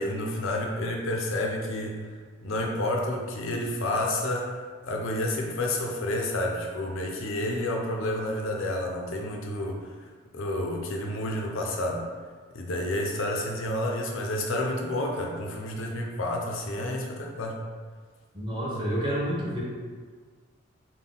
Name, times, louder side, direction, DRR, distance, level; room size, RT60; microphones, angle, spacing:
voice 1, 0.0-2.0 2.4-9.8 10.3-12.0 12.5-17.6, left 1 dB, 70° left, 1 dB, 0.6 m, -30 dB
voice 2, 18.3-19.6, equal, 25° right, -5 dB, 0.7 m, -29 dB
3.6 x 2.2 x 3.8 m, 1.6 s
head